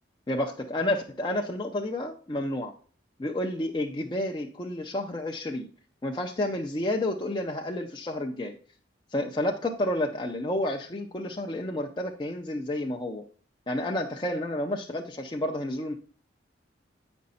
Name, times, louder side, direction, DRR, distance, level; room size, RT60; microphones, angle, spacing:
voice 1, 0.3-2.7 3.2-5.7 6.0-8.6 9.1-13.2 13.7-15.9, left 1 dB, 25° left, 1 dB, 0.5 m, -30 dB
8.6 x 5.2 x 4.1 m, 0.42 s
head